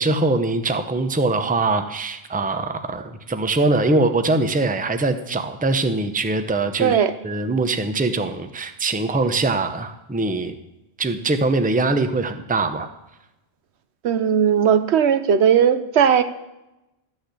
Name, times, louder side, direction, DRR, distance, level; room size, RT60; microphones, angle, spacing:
voice 1, 0.0-10.6 11.0-12.9, right 3 dB, 10° right, 8 dB, 0.6 m, -22 dB
voice 2, 6.8-7.1 14.0-16.2, right 8 dB, 90° right, 11 dB, 1.1 m, -17 dB
13.0 x 6.5 x 8.3 m, 0.95 s
omnidirectional pair, 1.1 m